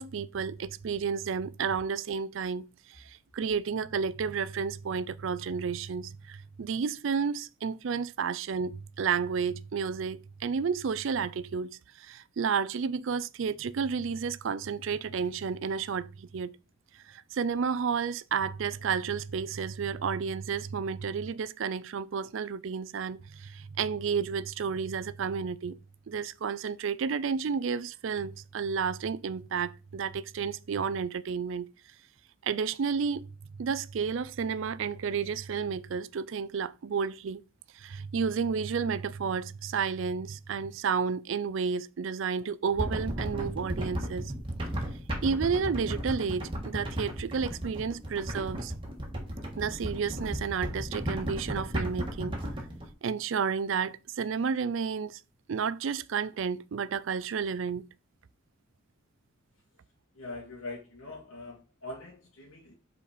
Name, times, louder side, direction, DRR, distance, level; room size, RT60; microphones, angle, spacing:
voice 1, 0.0-11.7 11.9-16.5 16.9-25.8 26.1-31.7 32.4-33.3 33.6-37.4 37.7-44.3 45.2-48.7 49.6-52.4 53.0-55.2 55.5-57.8, right 6 dB, 65° right, 0.4 m, -31 dB
sound 1, 42.8-52.9, right 1 dB, 25° right, 1.5 m, -35 dB
voice 2, 60.1-62.7, left 2 dB, 85° left, 1.7 m, -42 dB
5.4 x 4.1 x 4.9 m
head